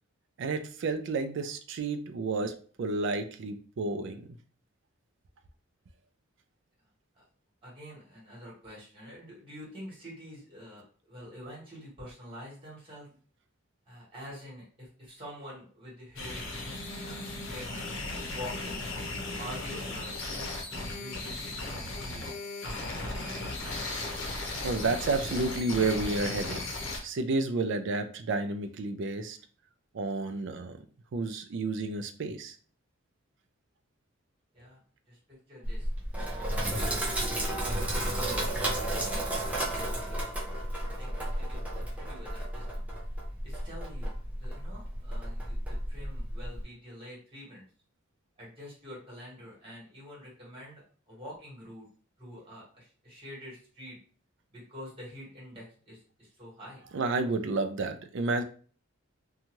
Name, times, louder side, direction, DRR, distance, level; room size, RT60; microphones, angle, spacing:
voice 1, 0.4-2.5 2.8-4.2 24.6-26.7 27.0-29.4 29.9-30.8 31.1-32.6 56.9-58.4, right 3 dB, 60° right, 8 dB, 0.4 m, -31 dB
voice 2, 7.6-13.1 13.8-17.9 18.3-18.8 19.4-21.4 21.8-22.3 22.6-24.1 34.5-34.8 35.1-35.9 36.5-37.1 37.5-40.5 41.0-42.8 43.4-44.1 44.4-47.7 48.4-50.8 51.1-51.9 52.2-54.0 54.5-56.8, equal, 25° right, -5 dB, 1.4 m, -47 dB
sound 1, 16.2-27.0, left 2 dB, 65° left, 0.7 m, -36 dB
Sink (filling or washing), 35.6-46.6, right 1 dB, 5° right, 0.5 m, -33 dB
2.7 x 2.3 x 3.0 m, 0.42 s
head